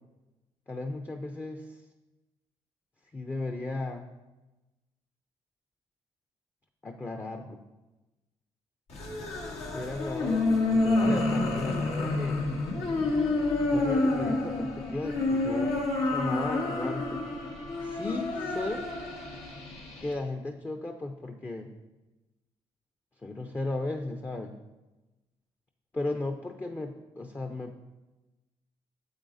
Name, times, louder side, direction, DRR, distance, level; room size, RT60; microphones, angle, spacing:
voice 1, 0.7-1.8 3.1-4.1 6.8-7.6 9.7-12.4 13.7-15.8 16.0-17.3 17.8-18.9 20.0-21.7 23.2-24.6 25.9-27.8, left 2 dB, 20° left, 4 dB, 0.6 m, -35 dB
sound 1, 8.9-20.1, left 2 dB, 75° left, 1.3 m, -29 dB
8.8 x 7.3 x 2.6 m, 1.1 s
cardioid pair, 75°, 11 cm